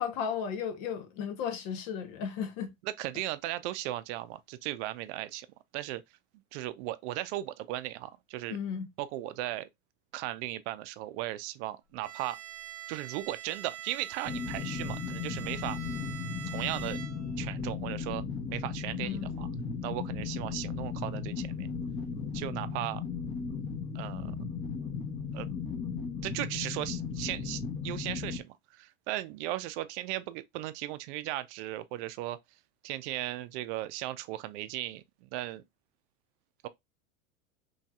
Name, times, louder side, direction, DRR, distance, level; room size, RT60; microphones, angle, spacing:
voice 1, 0.0-2.7 8.5-8.9 19.0-19.3, left 7 dB, 60° left, 0.9 m, -34 dB
voice 2, 2.8-5.5 5.7-6.0 6.5-8.6 9.0-9.7 10.1-12.4 12.9-15.8 16.5-17.0 17.4-18.2 18.5-19.5 19.8-21.7 22.3-23.0 23.9-24.3 25.3-25.5 26.2-32.4 32.8-35.6, right 15 dB, 55° right, 0.5 m, -37 dB
Bowed string instrument, 12.0-17.4, right 11 dB, 85° right, 0.7 m, -44 dB
sound 1, 14.2-28.4, left 5 dB, 25° left, 0.9 m, -36 dB
3.1 x 2.7 x 2.3 m
supercardioid pair, 125°, 43 cm